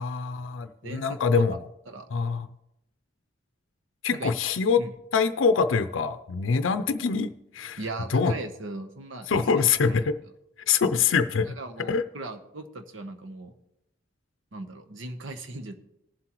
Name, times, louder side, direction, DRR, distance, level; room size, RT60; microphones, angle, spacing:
voice 1, 0.0-1.6 2.1-2.5 4.0-4.8 5.1-7.8 8.1-8.3 9.3-10.1 10.7-11.5 11.9-12.0, left 5 dB, 85° left, 10 dB, 0.5 m, -24 dB
voice 2, 0.8-1.6 1.9-2.1 4.1-4.3 4.8-4.9 7.8-10.1 11.4-13.5 14.5-15.8, right 2 dB, 80° right, 6 dB, 1.0 m, -38 dB
19.5 x 7.6 x 3.0 m, 0.89 s
head